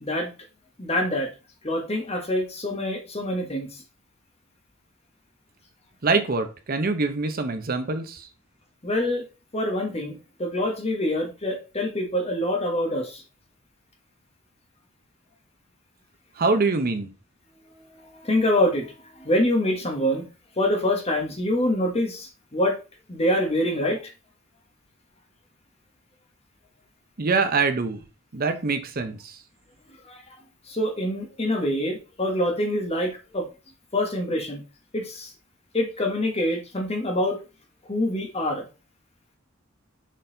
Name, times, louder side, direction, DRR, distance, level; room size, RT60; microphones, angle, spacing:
voice 1, 0.0-0.3 0.8-1.3 1.6-3.7 8.8-9.2 9.5-13.2 17.8-20.3 20.6-22.8 23.1-24.0 30.1-30.3 30.7-33.5 33.9-34.6 34.9-35.3 35.7-37.4 37.9-38.7, left 1 dB, 30° left, 2 dB, 1.3 m, -25 dB
voice 2, 6.0-8.3 16.4-17.1 27.2-28.0 28.3-29.4, right 4 dB, 45° right, 8 dB, 0.8 m, -24 dB
6.4 x 4.0 x 3.9 m, 0.32 s
head